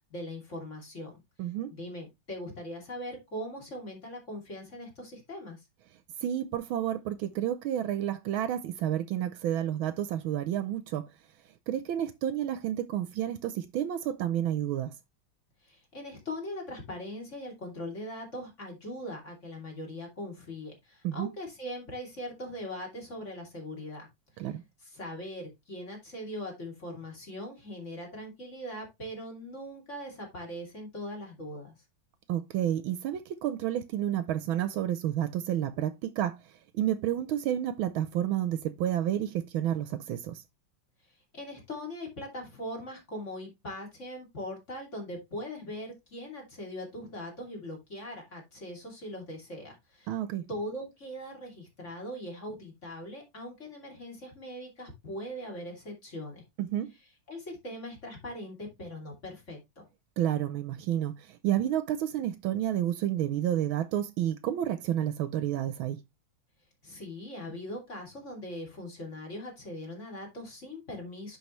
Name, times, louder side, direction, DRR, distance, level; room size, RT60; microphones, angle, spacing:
voice 1, 0.1-1.1 1.7-5.6 15.6-24.1 24.8-31.7 41.3-50.1 50.5-56.4 57.3-59.9 66.8-71.4, left 1 dB, 35° left, 3.0 m, -40 dB
voice 2, 1.4-1.7 6.2-11.1 11.7-14.9 21.0-21.3 24.4-24.6 32.3-36.4 36.8-40.4 50.1-50.4 56.6-56.9 60.2-66.0, right 11 dB, 75° right, 1.4 m, -30 dB
10.5 x 5.2 x 3.1 m
omnidirectional pair, 2.4 m